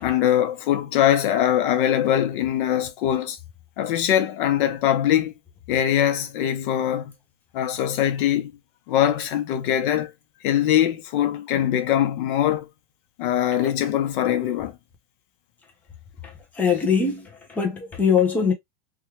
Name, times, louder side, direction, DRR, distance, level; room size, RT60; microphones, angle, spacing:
voice 1, 0.0-3.4 3.8-5.3 5.7-7.1 7.5-8.5 8.9-10.1 10.4-12.7 13.2-14.7, left 11 dB, 60° left, 0.8 m, -22 dB
voice 2, 16.6-18.5, left 6 dB, 5° left, 0.3 m, -22 dB
3.4 x 2.3 x 3.0 m
supercardioid pair, 175°, 29 cm